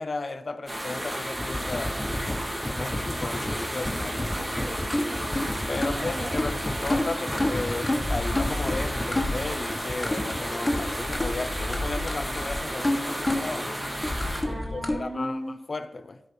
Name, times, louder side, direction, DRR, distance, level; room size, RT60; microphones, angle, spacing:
voice 1, 0.0-2.0 2.8-4.3 5.7-14.0 14.4-15.4 15.7-16.2, left 3 dB, 60° left, 0.6 m, -34 dB
sound 1, 0.7-14.4, equal, 20° right, 2.3 m, -33 dB
sound 2, 1.3-15.0, left 1 dB, 25° left, 1.2 m, -30 dB
voice 2, 4.3-5.5 5.9-6.4 14.4-15.5, equal, 40° right, 1.8 m, -37 dB
10.0 x 4.1 x 5.2 m
cardioid pair, 45°, 0 cm